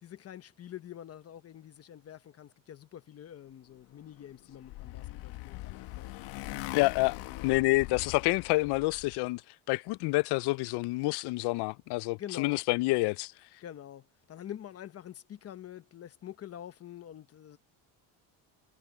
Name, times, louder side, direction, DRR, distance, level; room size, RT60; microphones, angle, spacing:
voice 1, 0.0-6.1 7.0-7.4 12.2-12.6 13.6-17.6, left 11 dB, 35° left, 1.1 m, -46 dB
Motorcycle, 4.1-9.2, left 19 dB, 85° left, 1.5 m, -42 dB
voice 2, 6.7-7.2 7.4-9.4 9.7-13.3, left 22 dB, 65° left, 0.5 m, -28 dB
cardioid pair, 145°, 42 cm